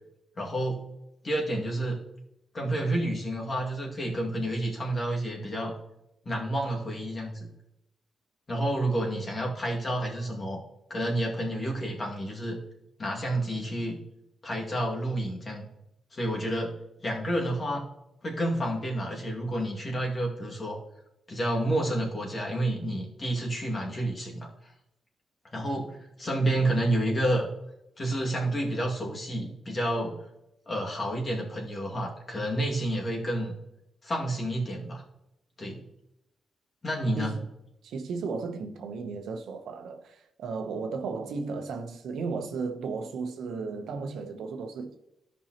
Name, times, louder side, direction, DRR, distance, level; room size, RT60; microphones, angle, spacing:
voice 1, 0.4-0.9 1.2-2.0 2.5-5.7 6.3-7.5 8.5-10.6 10.9-12.6 13.0-14.0 14.4-15.7 16.1-16.7 17.0-17.8 18.2-20.8 21.3-24.5 25.5-27.5 28.0-30.1 30.7-33.5 34.0-35.0 35.6-35.8 36.8-37.4, right 1 dB, 40° left, 2.1 m, -29 dB
voice 2, 37.2-37.5 37.8-45.0, right 4 dB, 85° right, 0.8 m, -35 dB
13.0 x 5.4 x 2.9 m
cardioid pair, 80°, 0 cm